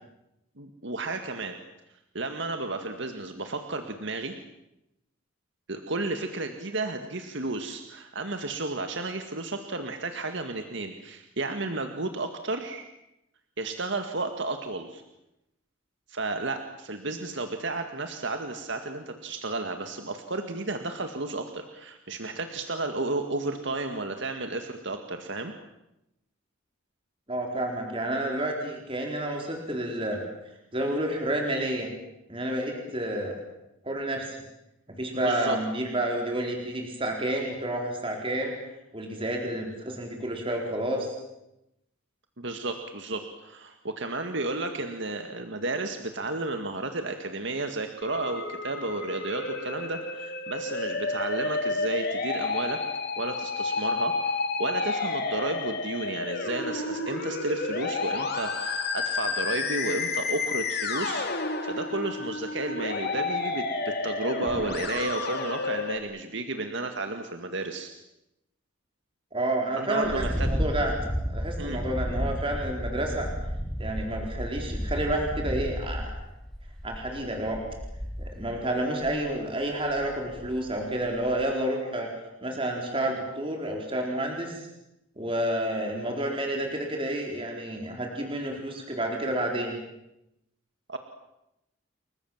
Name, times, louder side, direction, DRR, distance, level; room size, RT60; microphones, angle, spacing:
voice 1, 0.6-1.6 2.1-4.4 5.7-12.9 13.6-15.0 16.1-25.5 35.1-35.6 42.4-52.8 53.2-67.9 69.8-70.5 71.6-71.8 90.9-91.0, right 2 dB, 60° right, 6 dB, 2.0 m, -32 dB
voice 2, 27.3-30.2 30.7-31.9 32.3-33.4 33.8-34.4 35.0-38.5 38.9-41.1 69.3-70.9 71.3-73.3 73.8-76.1 76.8-77.6 78.2-82.1 82.4-84.6 85.2-89.7, right 1 dB, 25° right, 1 dB, 4.3 m, -30 dB
Musical instrument, 48.0-66.0, left 3 dB, 50° left, 3.5 m, -31 dB
sound 1, 70.0-78.6 79.0-79.3 79.9-80.8 81.1-81.4, equal, ahead, 2.7 m, -32 dB
30.0 x 22.5 x 7.5 m, 0.88 s
head